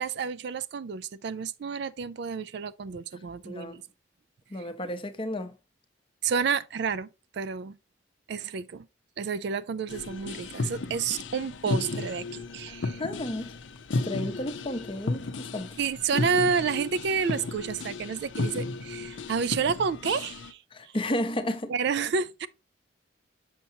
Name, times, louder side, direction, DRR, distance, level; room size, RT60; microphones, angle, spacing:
voice 1, 0.0-3.8 6.2-7.8 8.3-8.9 9.2-13.0 15.8-21.0 21.7-22.5, right 5 dB, 60° right, 0.4 m, -30 dB
voice 2, 3.4-3.8 4.5-5.5 12.7-13.6 14.0-15.7 20.7-21.7, left 1 dB, 25° left, 0.7 m, -32 dB
sound 1, 9.9-20.5, left 3 dB, 70° left, 0.6 m, -34 dB
6.6 x 5.6 x 2.8 m
head